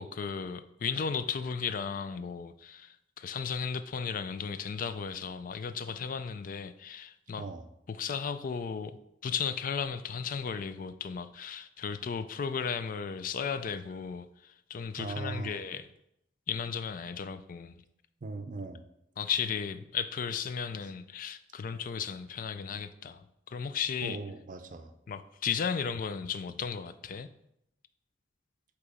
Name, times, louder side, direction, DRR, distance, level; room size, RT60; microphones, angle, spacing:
voice 1, 0.0-7.5 7.9-9.0 9.2-15.9 16.5-17.8 19.2-24.2 25.1-27.3, left 6 dB, 50° left, 12 dB, 0.4 m, -35 dB
voice 2, 7.4-7.7 15.0-15.6 18.2-18.8 24.0-24.9, right 3 dB, 45° right, 9 dB, 0.5 m, -39 dB
8.3 x 3.0 x 4.9 m, 0.79 s
head